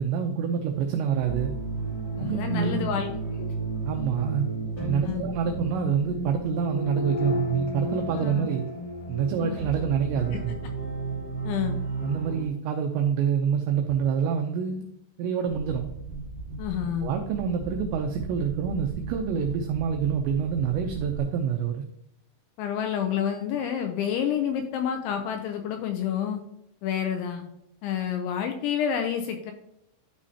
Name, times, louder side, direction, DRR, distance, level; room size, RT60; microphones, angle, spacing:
voice 1, 0.0-1.5 2.2-2.9 3.9-4.5 4.8-8.6 9.1-10.5 12.0-14.9 15.2-15.9 17.0-21.8, right 7 dB, 85° right, 3 dB, 2.5 m, -27 dB
sound 1, 1.2-12.5, right 2 dB, 30° left, 1.9 m, -32 dB
voice 2, 2.2-3.1 3.4-3.5 5.0-5.3 8.1-8.5 9.4-9.6 11.4-11.8 16.6-17.1 22.6-26.4 26.8-27.5 27.8-29.5, left 9 dB, 80° left, 5 dB, 2.7 m, -29 dB
sound 2, 15.5-21.2, right 3 dB, 60° right, 1.2 m, -38 dB
12.5 x 5.1 x 2.8 m, 0.80 s
omnidirectional pair, 5.9 m